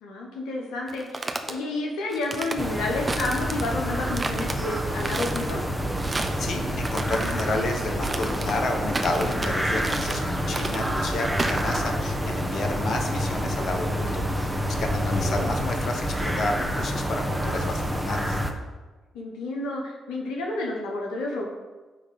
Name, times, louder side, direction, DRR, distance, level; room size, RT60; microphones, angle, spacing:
voice 1, 0.0-5.6 15.1-15.6 19.1-21.5, left 2 dB, 80° left, -1 dB, 1.2 m, -30 dB
sound 1, 0.9-1.5 2.1-2.6 3.1-3.8 4.1-4.6 5.0-5.5 6.0-6.4 6.8-7.5 8.0-8.6 8.9-9.5 9.8-10.3 10.5-10.9 11.4-11.8, right 2 dB, 30° right, 1.0 m, -32 dB
sound 2, 2.6-18.5, equal, 10° right, 1.4 m, -28 dB
voice 2, 6.1-18.4, left 2 dB, 60° left, 3 dB, 1.3 m, -31 dB
9.8 x 3.6 x 6.9 m, 1.2 s
hypercardioid pair, 45°, 0 cm